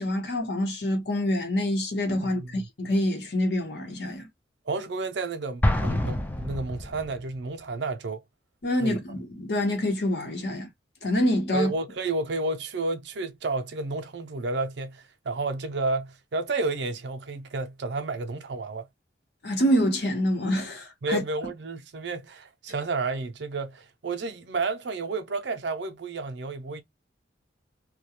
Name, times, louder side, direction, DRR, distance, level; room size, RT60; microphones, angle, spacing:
voice 1, 0.0-4.3 8.6-10.7 11.0-11.7 19.4-21.2, left 1 dB, 60° left, 0.9 m, -26 dB
voice 2, 2.2-2.7 4.7-8.2 8.8-9.0 11.5-18.9 21.0-26.8, right 3 dB, 70° right, 0.5 m, -31 dB
Explosion, 5.6-7.3, left 1 dB, 10° left, 0.3 m, -26 dB
2.3 x 2.2 x 2.8 m
head